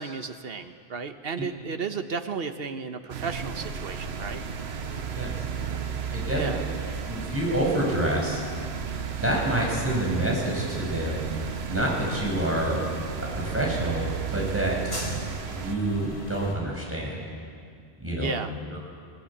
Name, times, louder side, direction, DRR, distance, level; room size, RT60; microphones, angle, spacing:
voice 1, 0.0-4.4 6.3-6.6 18.2-18.8, right 5 dB, 70° right, 8 dB, 1.3 m, -33 dB
sound 1, 3.1-15.8, right 9 dB, 85° right, 1.0 m, -34 dB
sound 2, 3.3-16.6, equal, 80° left, 4.0 m, -40 dB
voice 2, 6.1-6.5 7.1-8.4 9.2-12.8 13.3-15.0 15.3-17.2 18.0-18.3 18.7-18.8, right 1 dB, 15° right, -3 dB, 5.8 m, -27 dB
20.5 x 18.5 x 8.7 m, 2.2 s
omnidirectional pair, 1.0 m